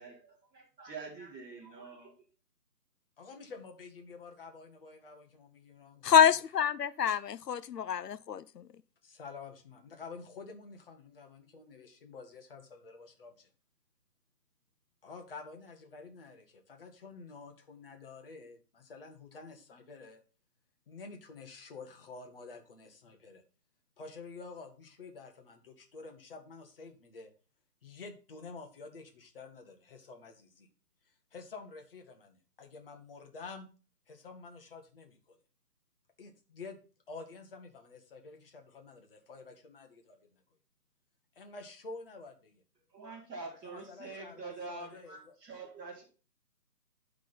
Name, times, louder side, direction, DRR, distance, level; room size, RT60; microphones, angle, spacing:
voice 1, 0.0-2.2 42.9-46.0, right 3 dB, 10° right, 2.4 m, -45 dB
voice 2, 3.2-6.1 9.0-13.5 15.0-20.2 20.9-23.4 24.0-27.3 27.8-30.7 31.3-33.7 34.1-35.4 36.2-36.8 37.1-40.4 41.3-42.6 43.6-45.3, left 4 dB, 35° left, 1.4 m, -49 dB
voice 3, 6.0-8.7, left 8 dB, 75° left, 0.7 m, -26 dB
11.5 x 3.8 x 5.6 m
figure-of-eight pair, 155°, 48 cm